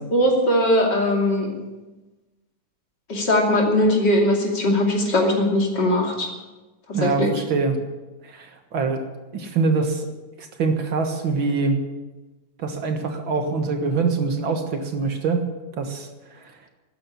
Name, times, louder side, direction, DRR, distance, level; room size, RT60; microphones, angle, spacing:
voice 1, 0.1-1.5 3.1-6.3 6.9-7.3, left 1 dB, 50° left, 0 dB, 3.3 m, -20 dB
voice 2, 6.9-7.8 8.2-9.0 9.3-10.1 10.4-11.8 12.6-15.4 15.8-16.5, right 4 dB, 65° right, 5 dB, 2.2 m, -24 dB
13.0 x 10.0 x 9.8 m, 1.1 s
omnidirectional pair, 2.4 m